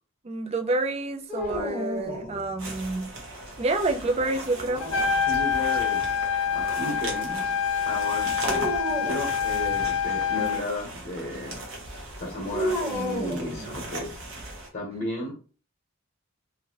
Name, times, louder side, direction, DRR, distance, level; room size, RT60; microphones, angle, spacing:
voice 1, 0.2-3.1 3.6-4.9, right 2 dB, 30° right, 0.3 m, -28 dB
sound 1, 1.3-2.9 4.5-5.6 8.5-9.3 12.5-14.2, equal, 10° right, 1.0 m, -32 dB
sound 2, 2.6-14.7, right 2 dB, 75° right, 1.0 m, -38 dB
Trumpet, 4.8-10.6, left 7 dB, 65° left, 0.4 m, -26 dB
voice 2, 5.3-7.5 7.9-8.7 9.0-11.6 12.2-14.2 14.7-15.3, left 1 dB, 40° left, 1.0 m, -34 dB
2.8 x 2.6 x 2.9 m
head